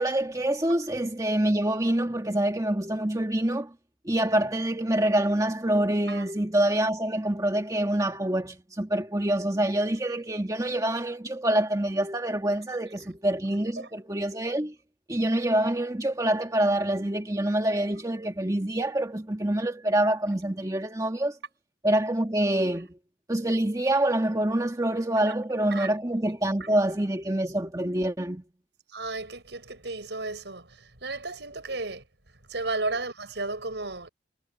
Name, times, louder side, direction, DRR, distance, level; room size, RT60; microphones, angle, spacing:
voice 1, 0.0-3.7 4.1-14.7 15.1-21.4 21.8-22.9 23.3-28.4, right 1 dB, 20° right, 1.9 m, -26 dB
voice 2, 28.9-32.0 32.5-34.1, right 3 dB, 70° right, 6.5 m, -33 dB
head